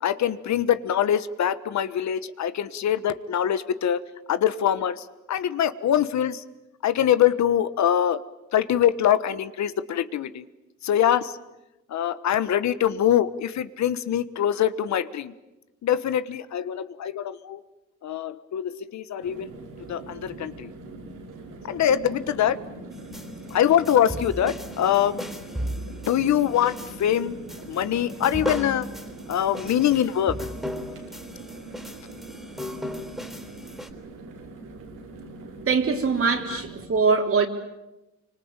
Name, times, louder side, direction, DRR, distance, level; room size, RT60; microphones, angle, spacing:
voice 1, 0.0-4.0 4.3-6.4 6.8-8.2 8.5-10.5 10.8-11.3 11.9-15.3 15.8-17.6 18.0-19.5 19.9-20.7 21.6-22.6 23.5-25.2 25.9-27.4 27.7-28.9 29.3-30.3 30.7-30.8 36.5-36.6, left 10 dB, 65° left, 1.3 m, -24 dB
sound 1, 19.2-36.9, right 2 dB, 90° right, 5.1 m, -42 dB
sound 2, 22.9-33.9, equal, ahead, 3.9 m, -36 dB
voice 2, 35.7-37.5, right 5 dB, 45° right, 3.9 m, -22 dB
26.5 x 25.0 x 9.0 m
cardioid pair, 90°, 30 cm